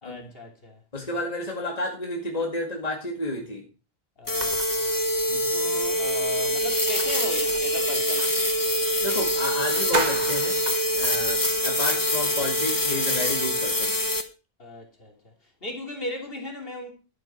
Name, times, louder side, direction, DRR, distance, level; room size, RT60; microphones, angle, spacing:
voice 1, 0.0-0.8 4.2-4.9 5.5-8.3 14.6-15.1 15.6-16.9, left 1 dB, 65° left, 3.2 m, -37 dB
voice 2, 0.9-3.6 5.3-5.5 9.0-10.6 10.9-13.9, left 2 dB, 40° left, 2.2 m, -31 dB
sound 1, 4.3-14.2, equal, 20° left, 1.0 m, -25 dB
sound 2, 4.4-8.4 9.1-9.2 9.5-11.6, right 3 dB, 45° right, 1.6 m, -35 dB
11.5 x 9.6 x 4.5 m
omnidirectional pair, 1.0 m